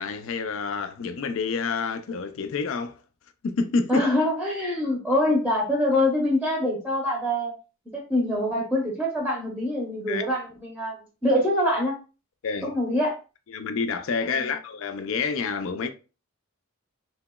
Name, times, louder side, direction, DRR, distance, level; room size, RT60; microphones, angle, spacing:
voice 1, 0.0-3.0 3.4-4.0 10.1-10.2 12.4-12.7 13.5-15.9, left 4 dB, 65° left, 0.4 m, -28 dB
voice 2, 3.9-7.5 7.9-11.9 12.6-13.1, left 1 dB, ahead, 0.7 m, -24 dB
2.9 x 2.8 x 2.2 m
head